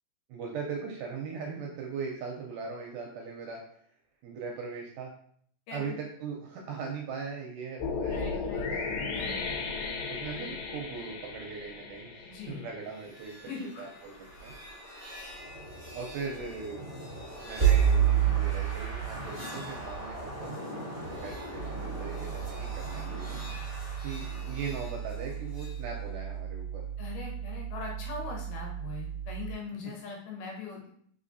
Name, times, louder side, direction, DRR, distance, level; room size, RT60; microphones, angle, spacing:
voice 1, 0.3-3.6 4.2-5.1 5.7-8.9 10.1-13.3 13.8-14.5 15.9-16.8 17.4-20.5 21.1-23.4 24.0-26.8, right 5 dB, 80° right, 0 dB, 1.9 m, -39 dB
sound 1, 7.8-13.0, left 4 dB, 90° left, 2.4 m, -35 dB
voice 2, 8.1-8.7 9.1-9.4 12.2-12.7 13.5-13.8 27.0-30.9, left 4 dB, 75° left, -1 dB, 2.2 m, -41 dB
sound 2, 12.9-25.8, right 8 dB, 25° right, 0.7 m, -32 dB
sound 3, 21.5-29.5, right 9 dB, 35° left, 1.7 m, -38 dB
4.8 x 3.5 x 2.6 m, 0.62 s
omnidirectional pair, 4.0 m